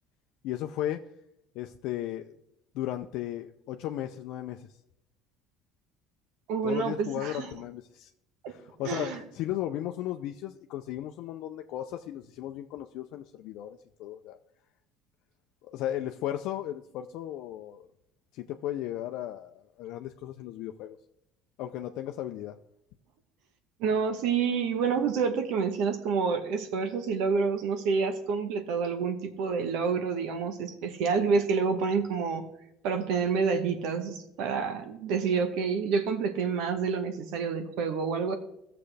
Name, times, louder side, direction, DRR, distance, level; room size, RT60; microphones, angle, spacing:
voice 1, 0.4-1.1 1.5-2.3 2.7-4.7 6.6-8.1 8.5-14.4 15.6-17.9 18.3-21.0 21.6-22.6, left 12 dB, 70° left, 4 dB, 0.5 m, -35 dB
voice 2, 6.5-7.5 8.4-8.5 8.8-9.2 23.8-32.5 32.8-38.3, right 5 dB, 75° right, 7 dB, 1.2 m, -28 dB
15.5 x 6.7 x 3.3 m, 0.82 s
cardioid pair, 130°, 0 cm